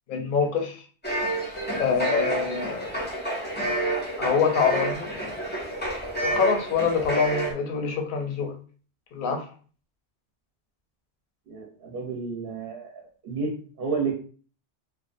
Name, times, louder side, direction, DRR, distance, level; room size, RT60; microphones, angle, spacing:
voice 1, 0.1-0.8 1.8-3.0 4.2-5.1 6.2-8.5 9.1-9.4, left 6 dB, 60° left, 3 dB, 0.7 m, -25 dB
sound 1, 1.0-7.5, right 1 dB, 15° left, 0.4 m, -29 dB
voice 2, 11.5-14.1, right 4 dB, 60° right, 0 dB, 0.8 m, -31 dB
2.4 x 2.2 x 2.5 m, 0.41 s
omnidirectional pair, 1.2 m